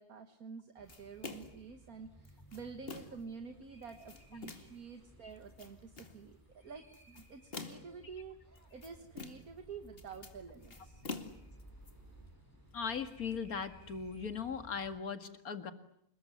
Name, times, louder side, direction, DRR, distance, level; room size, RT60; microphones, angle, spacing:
voice 1, 0.0-11.0, right 5 dB, 70° right, 6 dB, 2.1 m, -49 dB
sound 1, 0.8-15.0, right 1 dB, 10° left, 6.2 m, -59 dB
sound 2, 0.9-1.6 2.2-3.3 3.8-4.8 5.4-6.2 6.9-8.0 8.6-9.6 9.9-11.9, left 3 dB, 40° left, 2.4 m, -47 dB
voice 2, 12.7-15.7, left 6 dB, 70° left, 9 dB, 2.5 m, -38 dB
28.5 x 21.0 x 9.7 m, 0.73 s
omnidirectional pair, 1.6 m